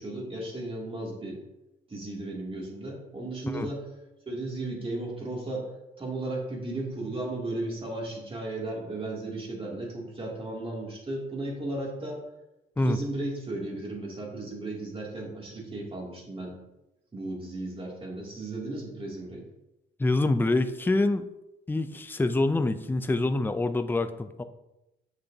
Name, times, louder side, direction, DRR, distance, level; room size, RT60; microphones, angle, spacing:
voice 1, 0.0-1.4 1.9-3.8 4.3-5.7 6.0-12.2 12.8-16.6 17.1-19.4, right 2 dB, 30° right, -3 dB, 2.5 m, -35 dB
voice 2, 20.0-21.2 21.7-24.4, left 2 dB, 10° left, 10 dB, 0.4 m, -26 dB
8.1 x 6.6 x 2.8 m, 0.94 s
cardioid pair, 90°, 20 cm